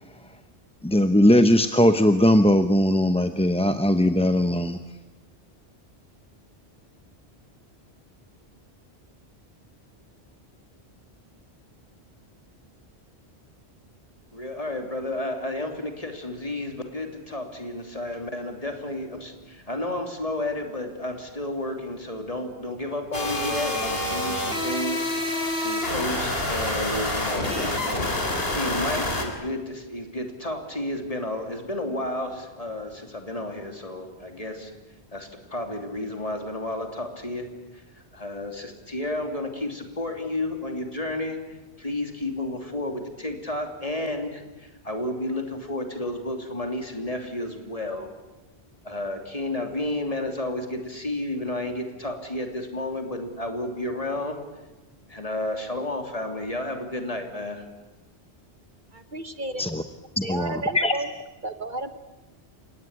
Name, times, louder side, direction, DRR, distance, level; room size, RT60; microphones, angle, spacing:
voice 1, 0.8-4.8 59.6-59.8 60.2-60.9, left 1 dB, 5° left, 8 dB, 0.7 m, -19 dB
voice 2, 14.3-34.7 35.1-37.5 37.7-37.8 38.1-41.4 41.8-48.1 48.8-54.4 55.1-57.6, left 1 dB, 35° left, 4 dB, 3.2 m, -32 dB
sound 1, 23.1-29.2, left 1 dB, 60° left, 3.9 m, -27 dB
voice 3, 58.9-59.6 60.2-61.1 61.4-62.0, right 2 dB, 45° right, 10 dB, 1.3 m, -32 dB
30.0 x 18.0 x 9.8 m, 1.1 s
omnidirectional pair, 1.1 m